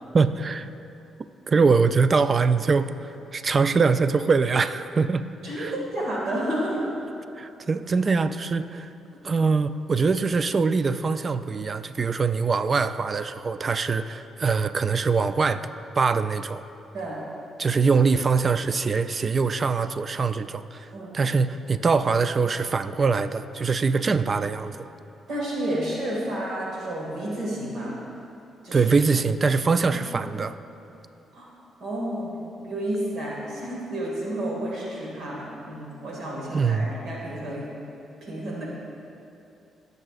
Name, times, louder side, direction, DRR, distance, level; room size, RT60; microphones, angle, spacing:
voice 1, 0.1-0.7 1.5-5.3 5.6-5.7 7.4-8.9 9.2-15.7 16.0-16.6 17.6-20.9 21.1-24.9 28.7-30.6 36.5-36.9, right 4 dB, 40° right, 12 dB, 0.3 m, -23 dB
voice 2, 5.4-6.8 16.9-17.2 20.9-21.1 25.3-28.0 28.6-28.9 29.8-29.9 30.8-30.9 31.3-31.5 31.8-37.7 38.2-38.7, right 1 dB, 70° right, -4 dB, 1.8 m, -31 dB
15.5 x 6.6 x 2.5 m, 2.8 s
cardioid pair, 90°, 0 cm